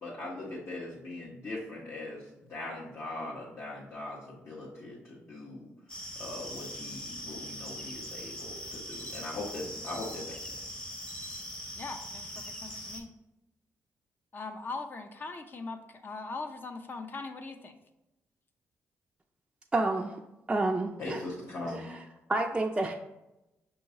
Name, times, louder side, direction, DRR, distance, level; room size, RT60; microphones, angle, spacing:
voice 1, 0.0-5.7 6.2-10.6 21.0-21.9, left 2 dB, 60° left, -6 dB, 1.0 m, -40 dB
sound 1, 5.9-13.0, equal, 15° left, 0.9 m, -41 dB
voice 2, 11.7-13.1 14.3-17.8, left 3 dB, 40° left, 6 dB, 0.5 m, -40 dB
voice 3, 19.7-20.2 20.5-21.2 21.8-22.0 22.3-22.9, right 2 dB, 20° right, 0 dB, 0.4 m, -29 dB
5.5 x 2.8 x 2.7 m, 0.93 s
cardioid pair, 85°, 5 cm